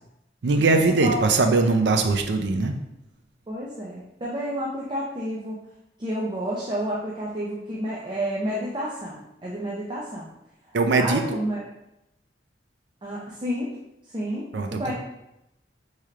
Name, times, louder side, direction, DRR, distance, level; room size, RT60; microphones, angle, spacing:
voice 1, 0.4-2.8 10.7-11.4 14.5-14.9, right 3 dB, 75° right, 5 dB, 0.5 m, -21 dB
voice 2, 3.5-5.6 6.0-10.3 10.6-11.6 13.0-13.8 14.1-14.9, equal, 25° right, -5 dB, 0.5 m, -30 dB
4.3 x 3.2 x 2.4 m, 0.87 s
head